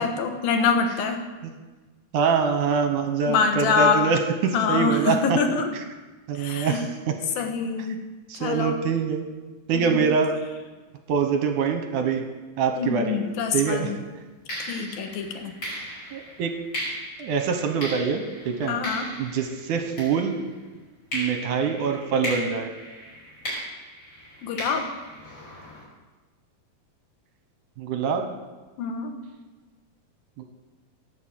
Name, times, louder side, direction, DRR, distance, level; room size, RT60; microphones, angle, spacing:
voice 1, 0.0-1.2 3.3-4.0 4.5-5.7 6.3-6.9 7.4-8.0 8.4-8.7 9.7-10.0 12.8-14.0 14.7-15.5 18.7-19.1 24.4-24.9 28.8-29.1, left 5 dB, 80° left, 5 dB, 3.1 m, -25 dB
voice 2, 2.1-5.4 6.3-6.8 8.3-9.2 9.7-10.3 11.1-12.2 12.6-13.2 13.5-13.9 14.7-14.9 16.1-16.5 17.2-18.7 19.2-20.4 21.1-22.7 27.8-28.3 30.4-30.5, right 6 dB, 70° right, 5 dB, 2.3 m, -24 dB
sound 1, 13.3-13.6 14.5-20.7 21.1-25.8, equal, 30° left, 6.0 m, -37 dB
19.0 x 6.6 x 7.6 m, 1.2 s
omnidirectional pair, 4.1 m